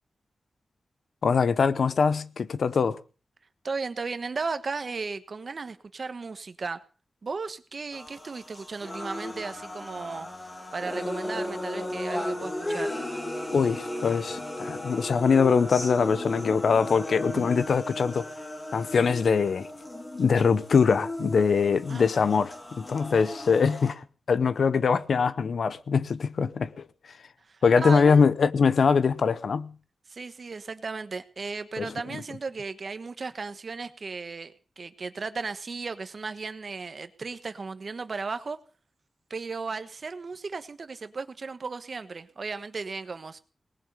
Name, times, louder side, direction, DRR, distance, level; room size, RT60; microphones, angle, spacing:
voice 1, 1.2-3.0 13.5-18.3 18.7-19.7 20.2-26.9 27.6-29.7 31.8-31.9, left 5 dB, 70° left, 0.8 m, -23 dB
voice 2, 3.6-6.8 7.2-10.3 10.7-12.9 17.3-17.5 21.9-22.1 24.8-24.9 27.5-28.2 30.1-38.6 39.3-43.4, right 4 dB, 45° right, 1.2 m, -35 dB
sound 1, 7.9-23.9, left 1 dB, 20° left, 2.1 m, -35 dB
19.0 x 7.3 x 8.1 m
wide cardioid pair, 175°, 0 cm